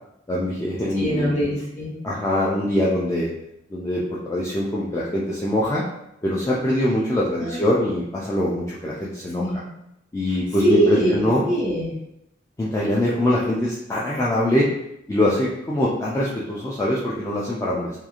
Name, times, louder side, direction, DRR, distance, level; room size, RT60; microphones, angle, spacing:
voice 1, 0.3-1.3 2.0-3.3 3.7-5.8 6.2-9.4 10.1-11.4 12.6-14.7 15.1-18.0, left 1 dB, 15° left, -6 dB, 0.3 m, -23 dB
voice 2, 0.9-1.9 7.4-7.6 9.4-9.6 10.3-11.9, right 1 dB, 35° left, -7 dB, 1.2 m, -22 dB
2.9 x 2.3 x 2.4 m, 0.82 s
head